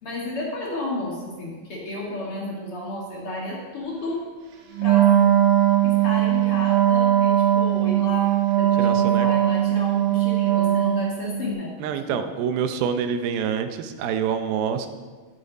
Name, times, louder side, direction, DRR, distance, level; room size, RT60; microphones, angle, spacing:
voice 1, 0.0-4.2 4.8-5.1 5.8-12.2, left 1 dB, 45° left, -4 dB, 2.4 m, -32 dB
Wind instrument woodwind instrument, 4.8-11.3, right 11 dB, 65° right, 2.4 m, -19 dB
voice 2, 8.8-9.3 11.8-14.9, right 7 dB, 85° right, 8 dB, 2.6 m, -26 dB
12.5 x 10.0 x 4.0 m, 1.4 s
omnidirectional pair, 4.2 m